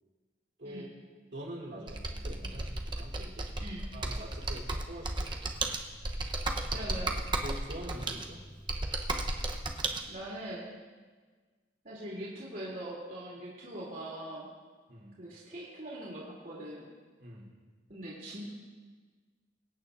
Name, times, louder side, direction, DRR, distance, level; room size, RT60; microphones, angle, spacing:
voice 1, 0.6-0.9 1.3-3.5 3.9-5.3 7.4-8.4 14.9-15.1 17.2-17.5, right 1 dB, 75° right, -5 dB, 3.4 m, -44 dB
Computer keyboard, 1.9-10.0, right 2 dB, 25° right, 0.8 m, -34 dB
voice 2, 6.7-7.1 10.0-10.7 11.8-14.5 15.2-16.9 17.9-18.5, right 1 dB, 50° right, -6 dB, 2.8 m, -42 dB
24.5 x 8.9 x 2.5 m, 1.4 s
head